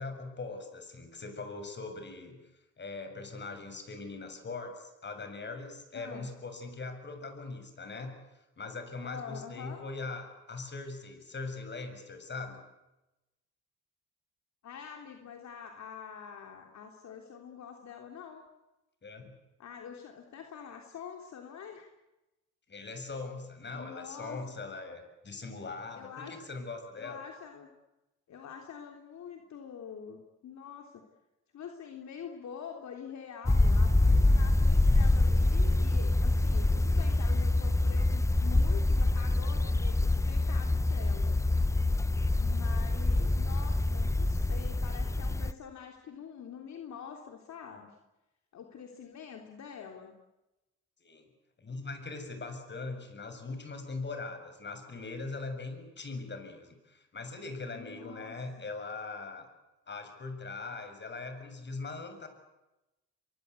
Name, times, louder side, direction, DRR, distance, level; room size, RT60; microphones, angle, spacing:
voice 1, 0.0-2.4 2.8-8.1 8.6-12.6 19.0-19.3 22.7-27.2 51.0-51.3 51.6-59.5 59.9-62.3, left 3 dB, 35° left, 7 dB, 7.2 m, -41 dB
voice 2, 9.0-9.8 14.6-18.4 19.6-21.9 23.7-24.4 25.9-26.5 26.9-27.7 28.3-31.0 31.5-41.3 42.4-48.0 48.5-50.1 57.6-58.4, left 7 dB, 65° left, 3 dB, 3.3 m, -46 dB
sound 1, 33.5-45.5, left 2 dB, 10° left, 0.9 m, -25 dB
27.0 x 23.0 x 8.4 m, 0.99 s
cardioid pair, 90°, 30 cm